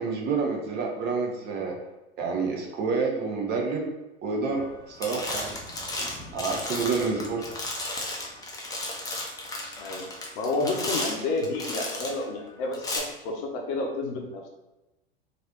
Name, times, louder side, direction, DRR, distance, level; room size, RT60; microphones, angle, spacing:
voice 1, 0.0-1.8 2.2-3.9 4.2-5.5 6.3-7.4, right 4 dB, 35° right, 0 dB, 0.7 m, -28 dB
sound 1, 4.5-4.7 5.0-12.2 12.7-13.0, left 2 dB, 10° left, 0.7 m, -34 dB
voice 2, 10.4-14.5, left 2 dB, 50° left, 1 dB, 0.7 m, -30 dB
3.1 x 2.6 x 2.9 m, 1.0 s
figure-of-eight pair, 85°, 31 cm